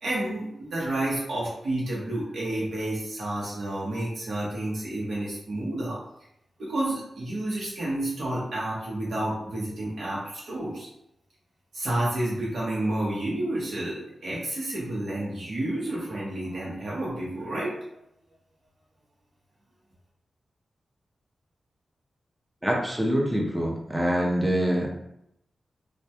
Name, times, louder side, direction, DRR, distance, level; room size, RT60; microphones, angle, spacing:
voice 1, 0.0-6.0 6.6-10.9 11.7-17.8, right 1 dB, 75° right, -6 dB, 0.7 m, -30 dB
voice 2, 22.6-24.9, equal, 5° right, -2 dB, 0.5 m, -25 dB
2.2 x 2.1 x 2.8 m, 0.79 s
wide cardioid pair, 135°, 0 cm